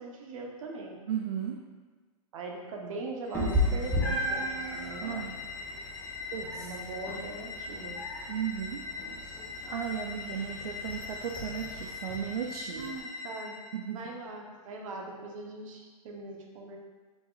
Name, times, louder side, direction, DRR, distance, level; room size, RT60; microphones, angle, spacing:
voice 1, 0.0-1.0 2.3-5.2 6.5-8.0 12.7-13.6 13.9-16.8, right 3 dB, 60° right, 1 dB, 0.8 m, -41 dB
voice 2, 1.1-1.6 4.1-5.4 6.3-6.7 8.3-9.1 9.7-12.9 13.7-14.0, right 8 dB, 75° right, 2 dB, 0.4 m, -36 dB
sound 1, 3.3-13.8, left 4 dB, 50° left, 0.7 m, -42 dB
Meow, 3.3-13.0, left 1 dB, 5° left, 0.7 m, -35 dB
4.9 x 3.7 x 2.3 m, 1.4 s
hypercardioid pair, 130°, 20 cm